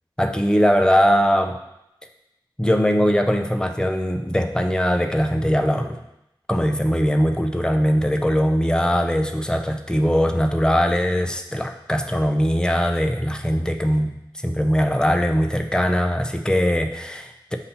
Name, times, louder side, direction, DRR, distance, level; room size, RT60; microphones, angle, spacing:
voice 1, 0.2-1.6 2.6-6.0 6.5-14.1 14.4-17.6, equal, 10° left, 4 dB, 0.6 m, -20 dB
7.1 x 2.8 x 5.5 m, 0.85 s
wide cardioid pair, 45°, 9 cm